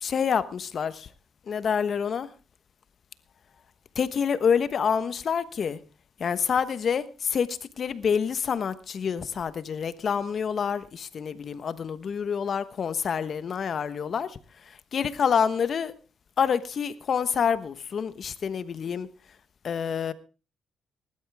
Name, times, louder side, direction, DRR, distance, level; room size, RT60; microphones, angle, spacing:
voice 1, 0.0-1.1 1.5-2.3 3.9-5.8 6.2-14.4 14.7-15.9 16.4-19.1 19.6-20.1, left 7 dB, 50° left, 1.1 m, -27 dB
19.0 x 12.0 x 3.5 m
cardioid pair, 90°, 0 cm